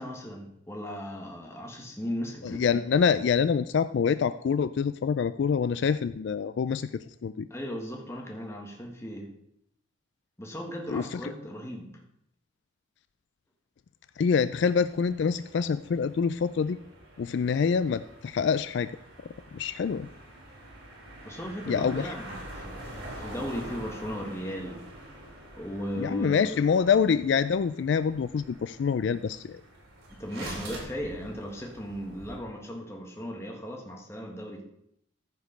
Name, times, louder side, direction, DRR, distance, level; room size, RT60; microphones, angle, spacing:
voice 1, 0.0-2.7 7.5-9.3 10.4-11.9 21.2-24.8 25.6-26.6 30.1-34.6, equal, 15° left, 0 dB, 1.6 m, -37 dB
voice 2, 2.4-7.5 10.9-11.3 14.2-16.8 17.2-18.9 19.5-20.1 21.7-22.1 26.0-29.6, left 6 dB, 60° left, 13 dB, 0.3 m, -26 dB
sound 1, 14.5-32.4, right 1 dB, 80° right, 3.7 m, -46 dB
14.5 x 5.1 x 5.2 m, 0.76 s
head